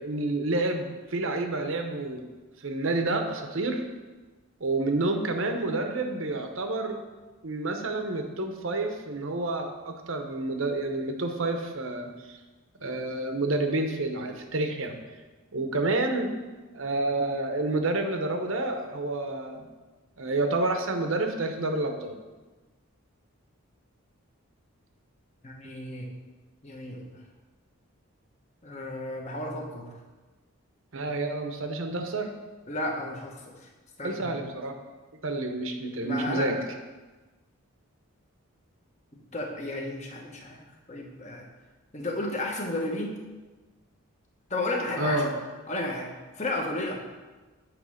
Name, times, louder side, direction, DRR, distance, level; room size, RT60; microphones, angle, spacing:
voice 1, 0.0-2.2 2.6-3.8 4.6-7.0 7.4-12.4 12.8-15.0 15.5-16.3 16.7-19.7 20.2-22.1 30.9-32.3 34.0-34.7 35.2-36.5 45.0-45.3, right 2 dB, 65° right, 5 dB, 0.8 m, -29 dB
voice 2, 25.4-26.1 26.6-27.0 28.6-29.9 32.7-33.5 34.0-34.3 36.0-36.5 39.3-40.6 40.9-41.5 41.9-43.2 44.5-45.3 45.7-46.1 46.4-47.0, left 2 dB, 30° left, 0 dB, 1.0 m, -32 dB
9.2 x 3.2 x 6.3 m, 1.3 s
head